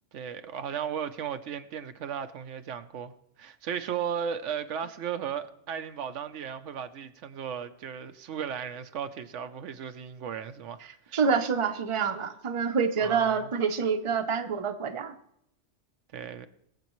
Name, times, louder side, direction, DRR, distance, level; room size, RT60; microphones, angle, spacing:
voice 1, 0.1-3.1 3.4-10.8 11.1-11.2 13.0-13.5 16.1-16.5, right 8 dB, 85° right, 1.0 m, -35 dB
voice 2, 11.1-15.1, right 6 dB, 35° right, 0.6 m, -27 dB
22.5 x 7.6 x 3.1 m
omnidirectional pair, 1.2 m